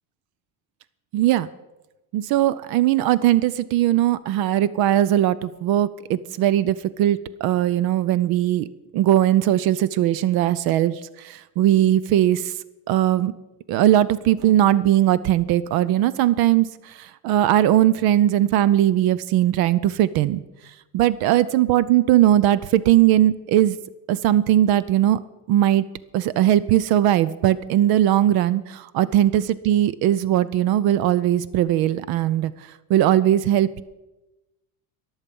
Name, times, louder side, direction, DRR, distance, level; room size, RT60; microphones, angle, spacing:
voice 1, 1.1-1.5 2.1-8.7 8.9-12.5 12.9-13.3 13.7-20.4 20.9-23.8 24.1-25.2 25.5-25.9 26.1-32.5 32.9-33.8, right 12 dB, 65° right, 18 dB, 0.6 m, -19 dB
21.5 x 7.3 x 5.3 m, 1.0 s
cardioid pair, 135°, 40 cm